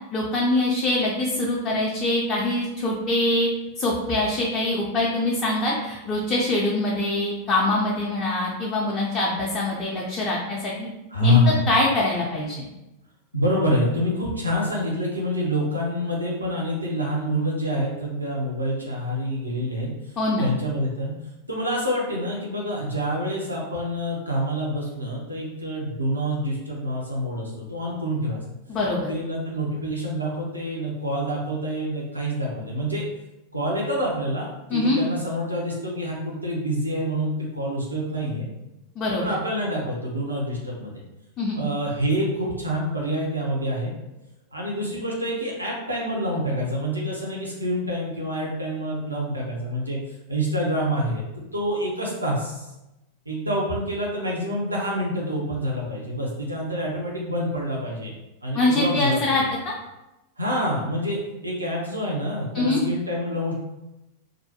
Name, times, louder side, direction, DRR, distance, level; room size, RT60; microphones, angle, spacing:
voice 1, 0.1-3.5 3.8-10.9 11.2-12.7 20.2-20.5 28.7-29.1 34.7-35.0 39.0-39.4 41.4-41.6 58.5-59.7 62.5-62.8, left 2 dB, 30° left, -4 dB, 0.5 m, -24 dB
voice 2, 11.1-11.7 13.3-19.9 20.4-21.1 21.5-28.4 29.1-33.0 33.5-38.5 39.2-41.0 41.5-43.9 44.5-50.0 50.3-52.7 53.3-58.1 58.4-59.5 60.4-63.6, equal, 80° right, -3 dB, 0.6 m, -27 dB
2.5 x 2.1 x 2.7 m, 0.95 s
figure-of-eight pair, 90°, 0 cm